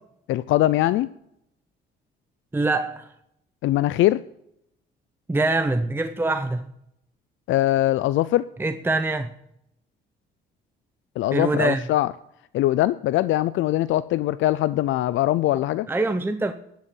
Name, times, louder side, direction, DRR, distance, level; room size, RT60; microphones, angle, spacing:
voice 1, 0.3-1.1 3.6-4.2 7.5-8.4 11.2-12.1 12.5-15.9, left 15 dB, 80° left, 0.4 m, -21 dB
voice 2, 2.5-3.1 5.3-6.6 8.6-9.3 11.3-11.8 15.9-16.5, right 2 dB, 10° right, 0.7 m, -24 dB
12.0 x 6.9 x 7.7 m
cardioid pair, 90°, 20 cm